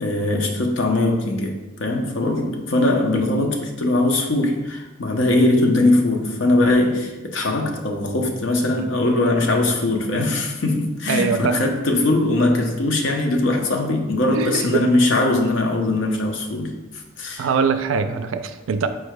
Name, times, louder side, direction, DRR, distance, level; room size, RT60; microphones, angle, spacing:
voice 1, 0.0-16.8 17.2-17.5, left 2 dB, 65° left, 2 dB, 0.6 m, -20 dB
voice 2, 11.1-11.7 14.3-14.8 17.4-18.9, right 5 dB, 75° right, 10 dB, 0.3 m, -22 dB
4.5 x 2.2 x 4.7 m, 1.1 s
head